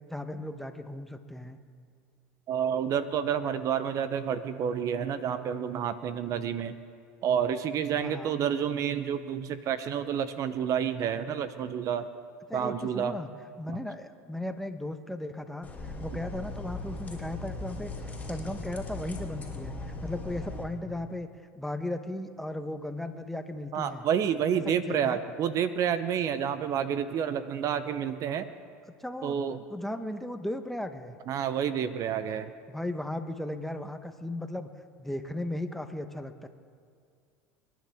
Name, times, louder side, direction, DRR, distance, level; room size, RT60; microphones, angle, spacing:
voice 1, 0.1-1.6 8.0-8.4 12.5-13.3 13.6-17.9 18.3-19.7 20.0-21.3 21.6-24.1 24.6-25.2 29.0-29.3 29.7-31.2 32.7-34.7 35.0-36.5, left 1 dB, 5° left, 8 dB, 1.0 m, -36 dB
voice 2, 2.5-6.7 7.2-12.1 12.5-13.2 23.7-28.5 29.2-29.6 31.3-32.5, right 8 dB, 50° right, 12 dB, 0.8 m, -29 dB
sound 1, 15.6-20.6, left 2 dB, 20° left, 3.7 m, -38 dB
28.0 x 10.5 x 3.6 m, 2.2 s
hypercardioid pair, 90°, 7 cm